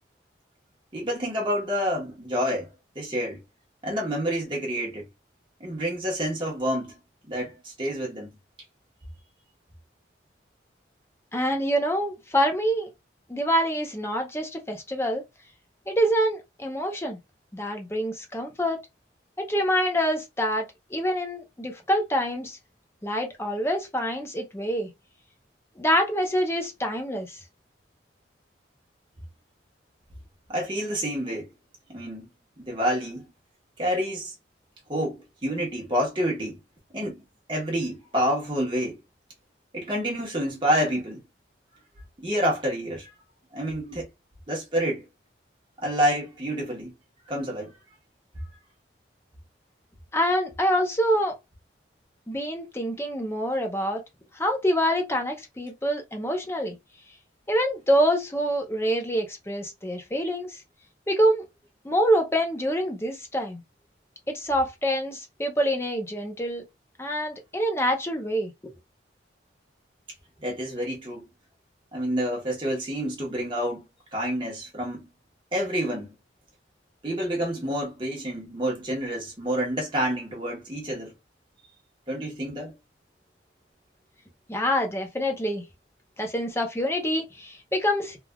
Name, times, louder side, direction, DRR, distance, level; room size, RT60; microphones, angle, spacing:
voice 1, 0.9-2.7 2.9-3.4 3.8-5.1 5.6-7.0 7.2-8.3 30.5-31.5 31.9-32.2 32.6-33.3 33.8-34.3 34.9-36.6 36.9-37.2 37.5-39.0 39.7-41.2 42.2-43.1 43.5-44.1 44.5-45.1 45.8-46.9 47.3-47.7 70.4-71.3 71.9-75.1 75.5-76.1 77.0-81.1 82.1-82.7, equal, 25° right, 1.0 m, -28 dB
voice 2, 11.3-12.9 13.3-15.2 15.9-17.2 17.5-18.8 19.4-22.6 23.0-24.9 25.8-27.4 50.1-51.4 52.3-54.0 54.3-56.8 57.5-60.6 61.1-61.5 61.8-63.6 64.3-66.6 67.0-68.5 84.5-85.6 86.2-88.2, equal, 15° left, 0.5 m, -26 dB
3.3 x 2.4 x 2.2 m
head